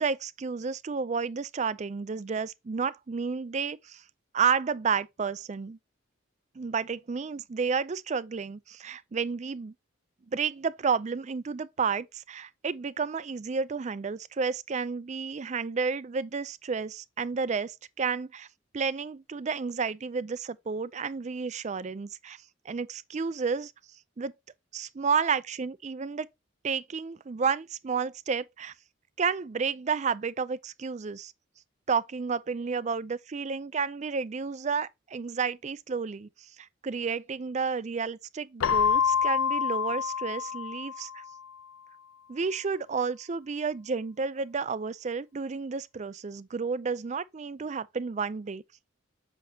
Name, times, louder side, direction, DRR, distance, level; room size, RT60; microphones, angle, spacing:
voice 1, 0.0-4.0 4.3-5.8 6.6-9.7 10.3-18.5 18.7-23.7 24.2-24.3 24.7-26.3 26.6-28.7 29.2-31.3 31.9-36.3 36.6-41.2 42.3-48.6, right 5 dB, 35° right, 0.4 m, -31 dB
Keyboard (musical), 38.6-41.3, left 7 dB, 80° left, 0.4 m, -27 dB
7.9 x 6.1 x 2.8 m
head